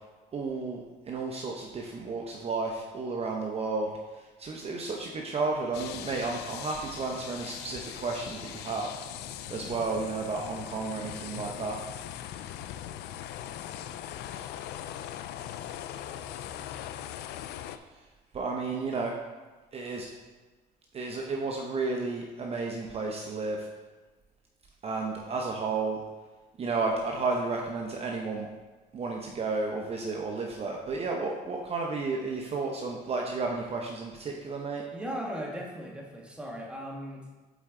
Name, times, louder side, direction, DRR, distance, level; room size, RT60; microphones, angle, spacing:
voice 1, 0.3-9.0 9.5-11.8 18.3-19.1 19.7-20.1 20.9-23.6 24.8-26.0 26.6-28.5 28.9-34.8, right 3 dB, 35° right, 0 dB, 0.8 m, -32 dB
sound 1, 5.7-17.8, left 11 dB, 75° left, 0.4 m, -40 dB
voice 2, 34.9-37.2, equal, 5° right, -1 dB, 1.4 m, -37 dB
8.3 x 4.4 x 3.7 m, 1.3 s
cardioid pair, 110°, 17 cm